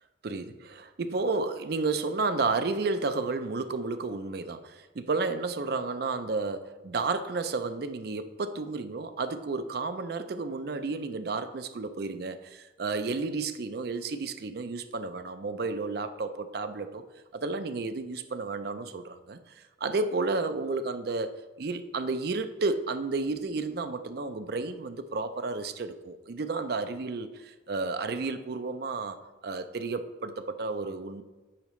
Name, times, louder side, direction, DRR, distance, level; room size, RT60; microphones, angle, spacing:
voice 1, 0.2-17.0 17.3-21.3 21.6-29.2 29.4-31.2, right 3 dB, 55° right, 9 dB, 0.4 m, -32 dB
8.7 x 4.9 x 3.1 m, 1.2 s
head